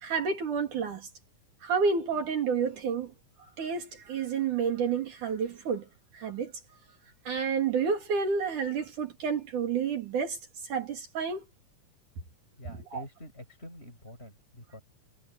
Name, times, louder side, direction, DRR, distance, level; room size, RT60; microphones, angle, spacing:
voice 1, 0.0-1.1 1.6-3.1 3.4-5.9 6.1-6.5 7.3-10.4 10.6-11.4 12.9-13.0, right 6 dB, 70° right, 4.3 m, -30 dB
voice 2, 12.5-14.8, left 1 dB, 15° left, 8.0 m, -47 dB
omnidirectional pair, 3.8 m